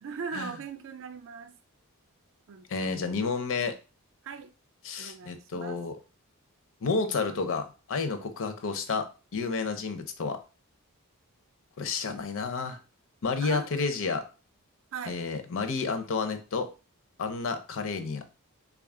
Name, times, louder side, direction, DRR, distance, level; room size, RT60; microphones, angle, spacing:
voice 1, 0.0-1.6 2.5-2.9 4.2-4.5 5.0-5.8 13.4-13.7 14.9-15.2, right 6 dB, 60° right, 0.4 m, -39 dB
voice 2, 2.7-3.7 4.8-5.9 6.8-9.1 9.3-10.4 11.8-12.8 13.2-14.2 15.1-16.7 17.2-18.3, left 4 dB, 60° left, 0.6 m, -30 dB
3.7 x 2.4 x 3.6 m
head